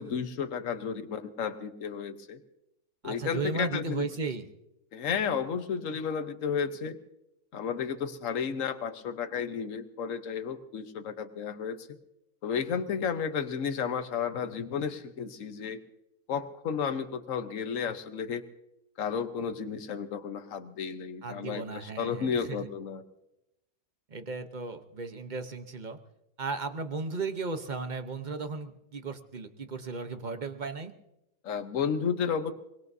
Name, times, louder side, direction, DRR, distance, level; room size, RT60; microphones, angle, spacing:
voice 1, 0.0-2.4 3.0-4.1 4.9-7.0 7.5-12.0 12.4-15.8 16.3-18.4 19.0-23.0 31.4-32.5, left 6 dB, 55° left, 9 dB, 1.3 m, -32 dB
voice 2, 3.0-4.4 21.2-22.6 24.1-26.0 26.4-30.9, right 4 dB, 35° right, 9 dB, 0.9 m, -35 dB
23.5 x 21.5 x 2.7 m, 0.87 s
omnidirectional pair, 1.7 m